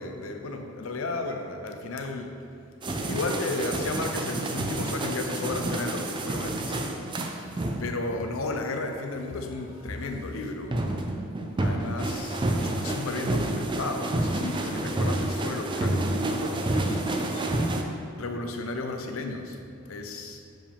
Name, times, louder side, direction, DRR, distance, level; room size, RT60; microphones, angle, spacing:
voice 1, 0.0-2.3 3.1-11.0 11.6-17.5 18.2-19.6 19.9-20.4, left 2 dB, 85° left, 5 dB, 0.6 m, -34 dB
sound 1, 2.8-8.0 10.7-17.8, right 2 dB, 25° right, 0.4 m, -29 dB
7.4 x 4.9 x 3.4 m, 2.4 s
head